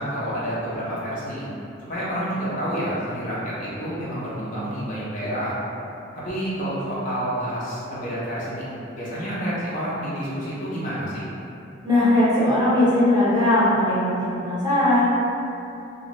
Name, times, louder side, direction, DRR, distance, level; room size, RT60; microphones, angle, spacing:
voice 1, 0.0-1.4 1.9-5.6 6.1-8.7 8.9-11.2, equal, 40° left, -8 dB, 0.5 m, -29 dB
voice 2, 11.8-15.0, left 1 dB, 20° right, -10 dB, 0.6 m, -19 dB
2.5 x 2.1 x 3.0 m, 2.7 s
head